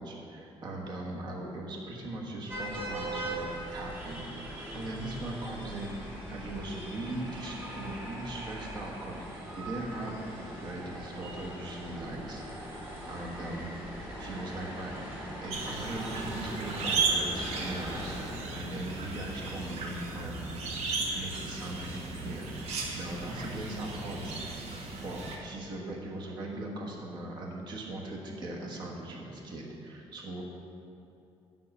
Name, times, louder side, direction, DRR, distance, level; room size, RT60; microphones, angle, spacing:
voice 1, 0.0-13.7 14.2-14.9 15.4-18.2 18.5-20.5 21.1-24.5 25.0-30.4, right 1 dB, 45° right, -1 dB, 1.2 m, -39 dB
sound 1, 2.5-18.2, right 1 dB, 20° right, 2.0 m, -41 dB
sound 2, 15.5-25.4, right 4 dB, 85° right, 1.0 m, -35 dB
sound 3, 17.3-22.9, left 2 dB, 35° left, 0.5 m, -47 dB
7.5 x 5.4 x 6.1 m, 2.7 s
cardioid pair, 170°, 10 cm